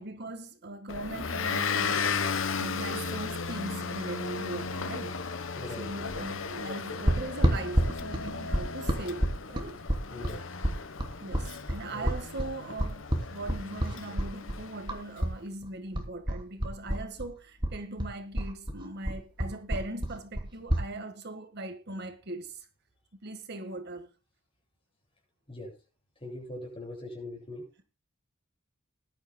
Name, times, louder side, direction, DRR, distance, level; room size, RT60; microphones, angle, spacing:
voice 1, 0.0-5.3 5.8-9.8 11.2-22.7 23.2-24.1, right 2 dB, 55° right, 1.6 m, -40 dB
Motor vehicle (road) / Engine, 0.9-15.1, left 5 dB, 65° left, 1.1 m, -35 dB
voice 2, 5.5-6.0 10.1-10.5 11.9-12.1 25.5-25.8 26.2-27.7, left 1 dB, 25° left, 7.9 m, -41 dB
sound 1, 7.1-15.4 15.6-17.3 17.6-20.9, equal, 25° right, 3.0 m, -29 dB
20.0 x 11.5 x 2.2 m
head